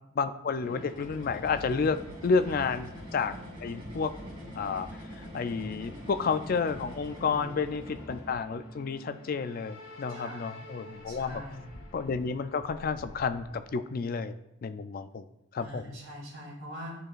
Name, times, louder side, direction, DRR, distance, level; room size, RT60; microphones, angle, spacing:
voice 1, 0.2-4.1 4.5-11.4 11.9-14.4 14.6-15.3 15.5-15.9, left 5 dB, 45° left, 10 dB, 0.3 m, -31 dB
sound 1, 0.6-14.1, left 1 dB, 70° left, 1.7 m, -51 dB
sound 2, 0.6-8.6, equal, 25° right, 2.3 m, -44 dB
voice 2, 7.2-7.5 10.1-10.5 11.1-11.6 15.6-17.0, equal, 80° right, -4 dB, 2.6 m, -43 dB
10.0 x 4.7 x 2.4 m, 0.88 s
head